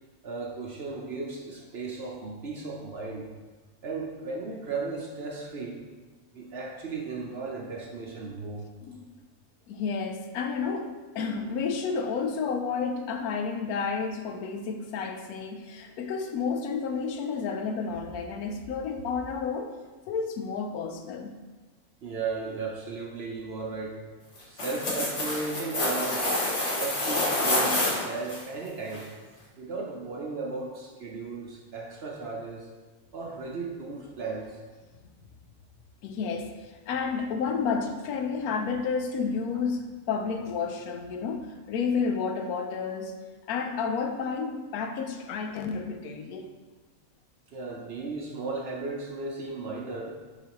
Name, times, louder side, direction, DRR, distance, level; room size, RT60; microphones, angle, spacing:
voice 1, 0.2-3.3 3.8-5.8 6.3-8.6 22.0-24.0 24.5-26.3 26.8-29.1 29.6-32.7 33.1-34.6 47.5-50.2, right 4 dB, 55° right, 0 dB, 0.8 m, -35 dB
voice 2, 9.7-19.7 20.1-21.3 36.0-43.1 43.5-46.5, left 5 dB, 85° left, 6 dB, 1.1 m, -31 dB
sound 1, 24.4-28.4 28.9-29.0, left 1 dB, 55° left, 1.7 m, -27 dB
6.8 x 5.0 x 3.0 m, 1.3 s
omnidirectional pair, 1.6 m